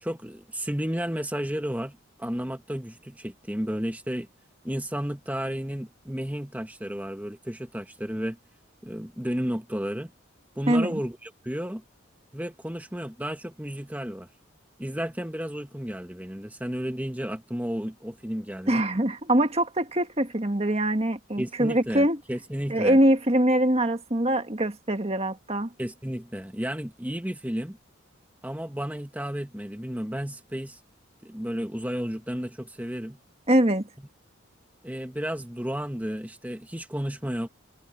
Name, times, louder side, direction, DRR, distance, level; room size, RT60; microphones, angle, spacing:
voice 1, 0.0-4.3 4.6-8.4 8.8-10.1 10.5-11.8 12.3-14.3 14.8-18.8 21.4-23.0 25.8-27.8 28.4-30.8 31.2-33.2 34.8-37.5, equal, 10° right, 1.5 m, -32 dB
voice 2, 10.7-11.0 18.7-22.2 22.7-25.7 33.5-33.8, right 1 dB, 30° right, 1.8 m, -23 dB
head